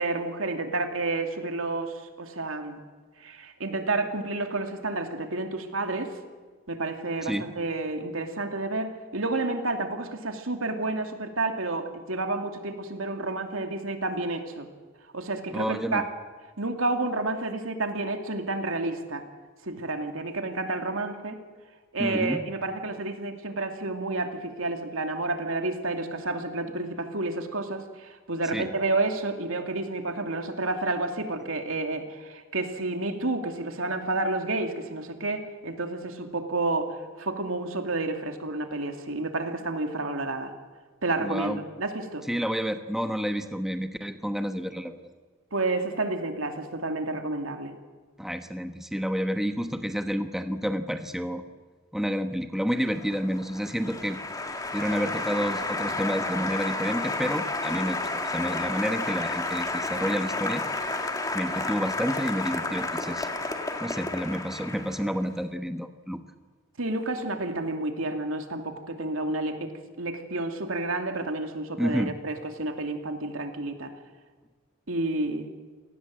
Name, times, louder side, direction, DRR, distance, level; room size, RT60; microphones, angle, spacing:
voice 1, 0.0-2.8 3.2-6.1 6.7-14.7 15.1-16.0 16.6-19.2 19.6-21.4 21.9-40.5 41.0-42.3 45.5-47.7 66.8-69.7 70.0-73.9 74.9-75.5, right 2 dB, 85° right, 5 dB, 2.7 m, -30 dB
voice 2, 15.5-16.0 22.0-22.4 28.5-28.7 41.2-41.6 42.3-45.0 48.2-51.4 51.9-54.2 54.7-60.6 61.3-63.3 63.8-66.2 71.8-72.1, equal, ahead, 7 dB, 1.1 m, -29 dB
Applause, 52.8-65.2, left 2 dB, 15° left, 1.9 m, -31 dB
28.5 x 19.0 x 7.7 m, 1.4 s
head